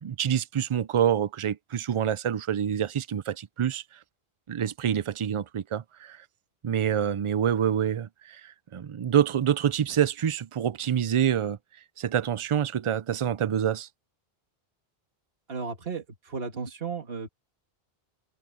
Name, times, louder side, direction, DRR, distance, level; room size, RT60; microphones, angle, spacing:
voice 1, 0.0-3.8 4.5-6.2 6.6-11.6 12.0-13.9, right 9 dB, 50° right, 0.4 m, -26 dB
voice 2, 15.5-17.3, right 5 dB, 70° right, 2.0 m, -34 dB
open air
omnidirectional pair, 1.0 m